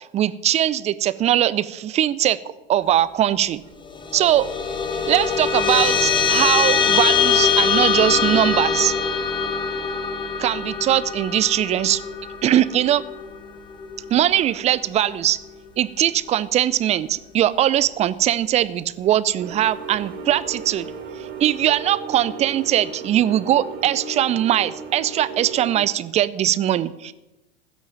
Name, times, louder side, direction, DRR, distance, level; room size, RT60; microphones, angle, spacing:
voice 1, 0.1-2.4 2.7-3.6 4.1-4.5 5.1-8.9 10.4-12.0 12.4-13.0 14.1-15.4 15.8-20.9 21.2-27.1, right 12 dB, 20° right, 16 dB, 0.5 m, -20 dB
sound 1, 3.9-14.6, left 6 dB, 15° left, 1.4 m, -23 dB
sound 2, 19.4-25.8, right 5 dB, 35° right, 2.6 m, -35 dB
14.5 x 6.3 x 8.9 m, 1.0 s
figure-of-eight pair, 90°, 31 cm